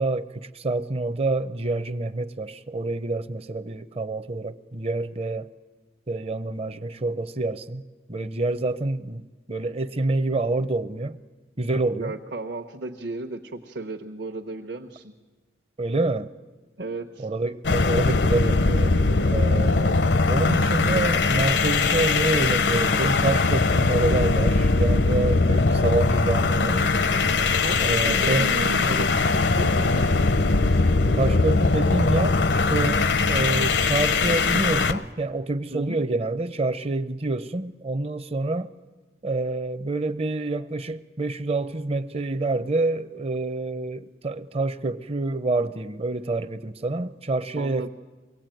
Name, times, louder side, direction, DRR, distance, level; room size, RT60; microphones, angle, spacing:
voice 1, 0.0-5.5 6.1-7.8 8.1-9.2 9.5-11.2 11.6-12.1 15.8-16.3 17.2-19.0 19.3-26.9 27.8-28.5 31.2-38.7 39.2-47.9, right 2 dB, 30° right, 0.6 m, -27 dB
voice 2, 12.0-15.1 16.8-17.3 27.6-30.1 35.7-36.0 47.6-47.9, right 2 dB, 65° right, 1.1 m, -34 dB
sound 1, 17.6-35.0, left 3 dB, 70° left, 0.7 m, -21 dB
23.5 x 17.0 x 9.1 m
head